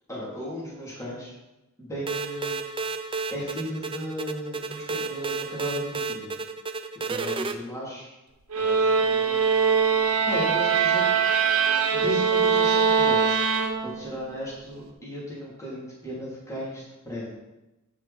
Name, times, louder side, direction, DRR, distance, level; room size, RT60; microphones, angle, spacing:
voice 1, 0.1-1.3 1.8-2.6 3.3-6.3 7.1-8.1 8.6-9.4 10.3-11.0 11.9-13.4 13.8-17.3, equal, 15° left, -7 dB, 2.9 m, -35 dB
sound 1, 2.1-7.5, right 4 dB, 25° right, 0.5 m, -32 dB
sound 2, 8.5-14.2, right 6 dB, 75° right, 1.1 m, -22 dB
8.9 x 7.2 x 4.2 m, 0.99 s
head